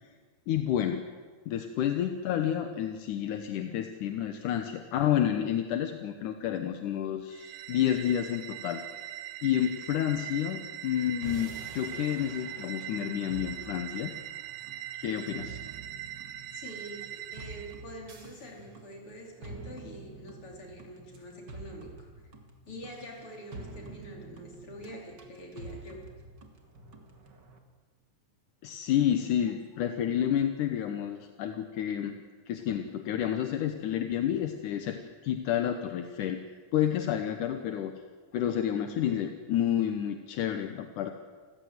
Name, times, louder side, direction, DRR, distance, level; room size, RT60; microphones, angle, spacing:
voice 1, 0.5-1.0 1.5-8.8 9.4-14.2 15.0-15.6 28.6-36.4 36.7-37.9 38.3-41.1, left 10 dB, 80° left, 7 dB, 2.6 m, -30 dB
sound 1, 7.3-17.8, right 12 dB, 70° right, 1.7 m, -41 dB
sound 2, 11.2-27.6, right 3 dB, 35° right, 2.4 m, -48 dB
voice 2, 16.5-22.1 22.6-26.0, equal, 45° left, 1 dB, 5.1 m, -45 dB
28.5 x 15.5 x 9.5 m, 1.5 s
omnidirectional pair, 3.6 m